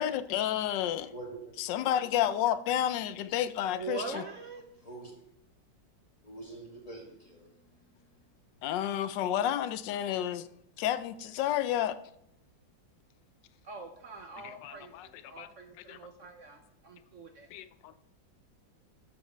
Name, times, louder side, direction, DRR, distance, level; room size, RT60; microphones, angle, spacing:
voice 1, 0.0-1.1 1.6-4.2 8.6-10.5 10.8-12.0 14.4-15.1 15.4-15.5 15.9-16.0 17.5-17.9, left 11 dB, 80° left, 1.2 m, -31 dB
voice 2, 1.0-1.6 4.7-5.2 6.2-8.3, right 2 dB, 20° left, 2.0 m, -46 dB
voice 3, 3.7-4.6 13.6-17.5, right 4 dB, 60° right, 0.9 m, -43 dB
12.5 x 5.3 x 4.3 m
omnidirectional pair, 2.0 m